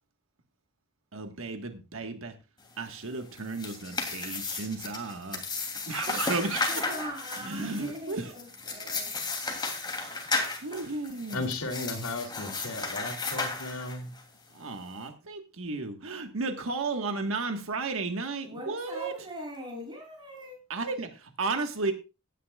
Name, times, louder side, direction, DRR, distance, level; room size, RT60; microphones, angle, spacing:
voice 1, 1.1-2.3 2.8-5.4 5.8-6.8 7.4-8.4 10.6-11.5 14.5-19.1 20.7-21.9, right 3 dB, 70° right, 6 dB, 1.5 m, -33 dB
sound 1, 3.3-14.2, left 3 dB, 20° left, 2.9 m, -34 dB
voice 2, 6.7-9.1 9.9-10.2 18.4-20.6, equal, 20° right, 0 dB, 7.4 m, -41 dB
voice 3, 11.3-14.1, left 2 dB, 85° left, 5 dB, 2.7 m, -35 dB
17.5 x 10.0 x 2.4 m, 0.29 s
head